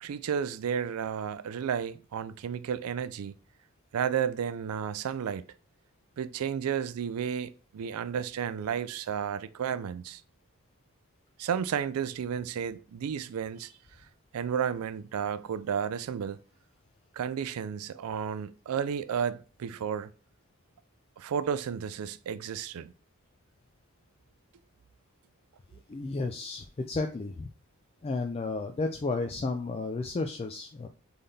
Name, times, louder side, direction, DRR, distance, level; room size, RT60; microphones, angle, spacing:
voice 1, 0.0-3.3 3.9-5.4 6.2-10.2 11.4-13.7 14.3-16.4 17.1-20.1 21.2-22.9, right 7 dB, 90° right, 0.4 m, -32 dB
voice 2, 25.9-27.5 28.0-30.9, left 3 dB, 30° left, 0.3 m, -32 dB
4.0 x 3.7 x 3.4 m
head